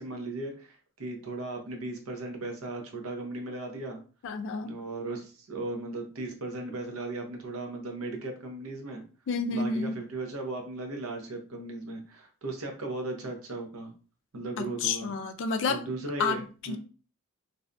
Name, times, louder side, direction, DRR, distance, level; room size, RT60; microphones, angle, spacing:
voice 1, 0.0-4.0 4.6-9.0 9.5-13.9 14.3-15.1 15.7-16.8, right 2 dB, 85° right, 0.7 m, -37 dB
voice 2, 4.2-4.8 9.3-10.0 14.6-15.8 16.2-16.4 16.7-16.8, left 4 dB, 60° left, 0.3 m, -30 dB
2.6 x 2.2 x 2.5 m
head